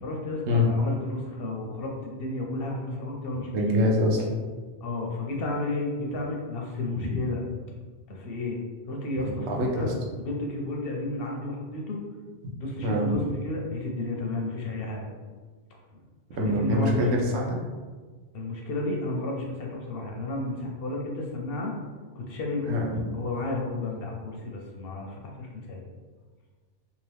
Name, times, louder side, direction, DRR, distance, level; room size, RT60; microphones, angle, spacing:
voice 1, 0.0-3.5 4.8-7.5 8.1-8.6 8.9-9.9 10.2-12.0 12.6-15.1 15.9-16.0 16.3-17.1 18.3-21.7 22.2-22.8 23.1-25.8, left 2 dB, 65° left, 0 dB, 0.7 m, -32 dB
voice 2, 3.5-4.4 6.9-7.1 9.5-9.9 12.8-13.2 16.4-17.6 22.7-22.8, left 1 dB, 75° right, -1 dB, 0.9 m, -24 dB
2.8 x 2.5 x 3.2 m, 1.4 s
omnidirectional pair, 1.2 m